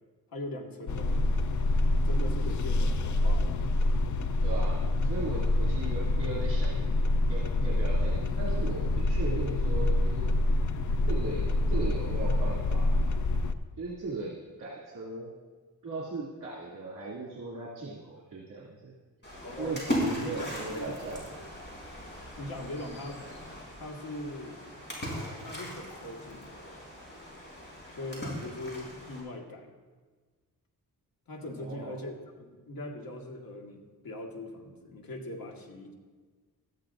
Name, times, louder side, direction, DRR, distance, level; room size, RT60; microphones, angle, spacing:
voice 1, 0.3-1.3 2.1-3.7 19.4-19.8 20.2-21.1 22.4-23.3 23.8-24.6 25.4-26.8 27.9-29.7 31.3-35.9, left 1 dB, 75° left, 0 dB, 1.9 m, -41 dB
sound 1, 0.9-13.5, left 2 dB, 55° left, 0.6 m, -27 dB
voice 2, 4.4-6.9 7.3-10.6 11.1-13.0 13.8-15.4 15.8-18.9 19.6-21.5 31.5-32.0, right 3 dB, 60° right, -7 dB, 2.6 m, -38 dB
Splash splatter, 19.2-29.2, equal, 30° left, 4.7 m, -38 dB
18.5 x 13.0 x 2.6 m, 1.4 s
wide cardioid pair, 140°, 36 cm